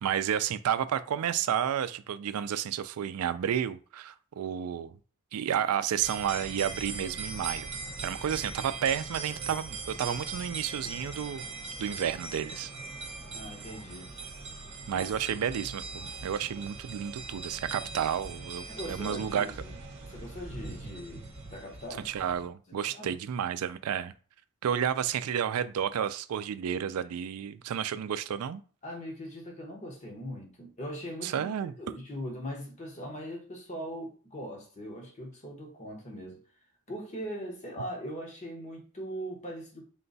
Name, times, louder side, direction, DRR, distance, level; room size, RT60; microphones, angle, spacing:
voice 1, 0.0-5.0 5.3-7.7 8.0-11.4 11.8-12.7 14.9-19.5 22.0-24.1 24.6-28.6 31.2-31.7, right 9 dB, 85° right, 0.3 m, -31 dB
sound 1, 6.0-22.5, right 3 dB, 50° right, 1.0 m, -41 dB
voice 2, 13.3-14.1 14.9-15.1 18.7-19.8 20.1-22.1 22.7-23.1 28.8-36.4 36.9-39.9, equal, 30° left, 1.1 m, -40 dB
3.8 x 2.2 x 4.0 m
head